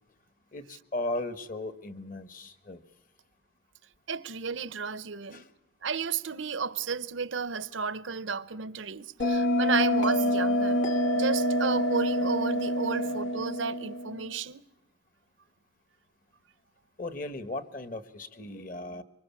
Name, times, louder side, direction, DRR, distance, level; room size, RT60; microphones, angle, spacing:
voice 1, 0.5-2.8 5.3-5.5 12.9-13.1 17.0-19.0, left 2 dB, 45° left, 1.4 m, -37 dB
voice 2, 4.1-5.4 5.8-10.8 11.1-14.6, right 5 dB, 85° right, 0.8 m, -33 dB
Bell, 9.2-14.3, equal, 90° left, 1.6 m, -26 dB
25.5 x 24.5 x 7.2 m
head